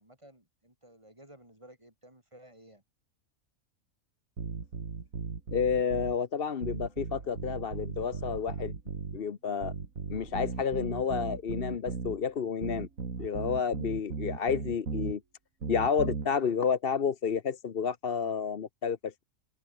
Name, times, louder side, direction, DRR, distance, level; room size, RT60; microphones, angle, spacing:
voice 1, 0.0-2.8, right 1 dB, 20° right, 4.8 m, -55 dB
sound 1, 4.4-6.2 6.6-9.2 9.6-12.2 12.6-15.1 15.6-16.3, right 5 dB, 90° right, 2.7 m, -37 dB
voice 2, 5.5-8.7 9.1-9.7 10.1-12.9 13.2-15.2 15.7-19.2, left 6 dB, 50° left, 1.1 m, -30 dB
open air
omnidirectional pair, 1.4 m